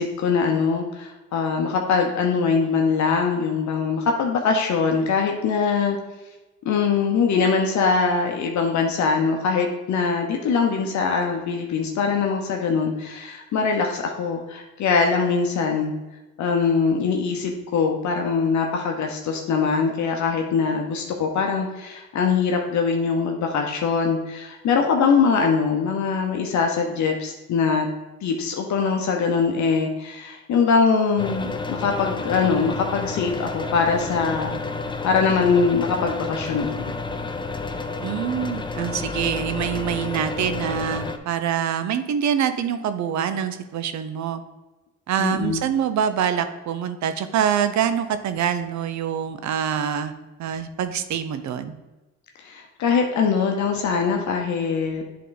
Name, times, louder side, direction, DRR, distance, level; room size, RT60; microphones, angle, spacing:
voice 1, 0.0-6.0 6.7-15.9 16.4-27.9 28.2-34.6 35.0-36.9 45.2-45.6 52.4-55.0, left 5 dB, 70° left, 2 dB, 0.8 m, -22 dB
sound 1, 31.2-41.2, left 3 dB, 15° left, 0.5 m, -30 dB
voice 2, 38.0-44.4 45.1-50.1 50.4-51.7, right 8 dB, 70° right, 10 dB, 0.7 m, -25 dB
8.4 x 3.8 x 3.9 m, 1.1 s
cardioid pair, 90°, 30 cm